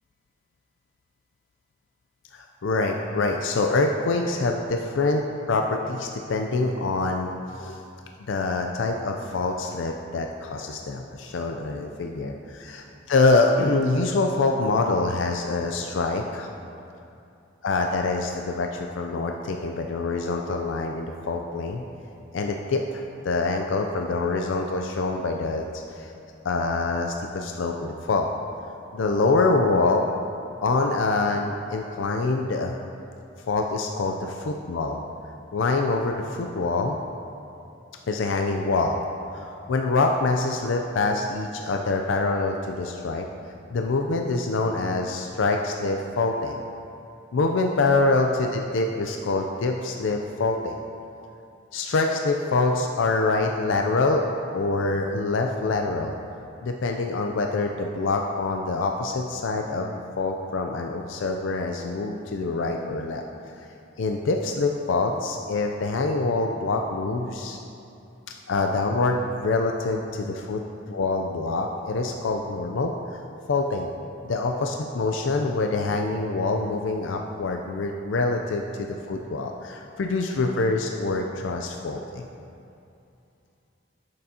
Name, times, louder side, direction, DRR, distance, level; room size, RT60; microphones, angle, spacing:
voice 1, 2.3-7.8 8.3-16.5 17.6-21.8 22.3-26.1 26.4-28.3 28.9-30.0 30.6-32.8 33.5-35.0 35.5-37.0 38.1-39.0 39.3-43.3 43.7-46.6 47.3-50.8 51.7-56.1 56.6-63.2 63.6-63.7 64.0-67.6 68.5-70.6 70.9-72.9 73.5-73.9 74.2-82.3, left 3 dB, 65° left, 3 dB, 0.4 m, -25 dB
12.0 x 6.7 x 2.8 m, 2.7 s
head